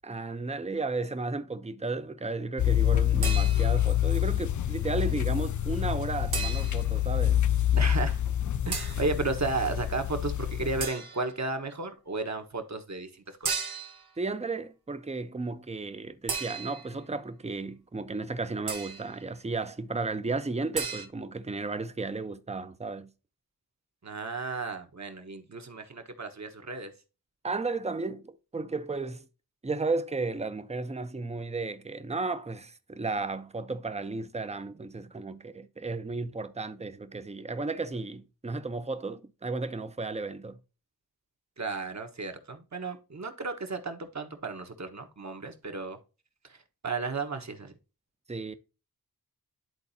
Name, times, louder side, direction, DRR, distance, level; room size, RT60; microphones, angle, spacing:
voice 1, 0.0-7.4 14.2-23.1 27.4-29.2 29.6-40.6 48.3-48.5, right 3 dB, 20° right, 0.7 m, -34 dB
sound 1, 2.6-10.9, left 11 dB, 50° left, 0.5 m, -27 dB
sound 2, 3.2-3.9 6.3-7.0 8.7-9.1 10.8-11.4 13.4-14.1 16.3-17.0 18.7-19.1 20.7-21.1, right 5 dB, 75° right, 1.2 m, -35 dB
voice 2, 7.8-8.2 8.7-13.6 24.0-26.9 41.6-46.0 46.4-46.6 46.8-47.7, right 3 dB, 45° right, 1.2 m, -34 dB
11.0 x 3.9 x 2.7 m
cardioid pair, 55°, 37 cm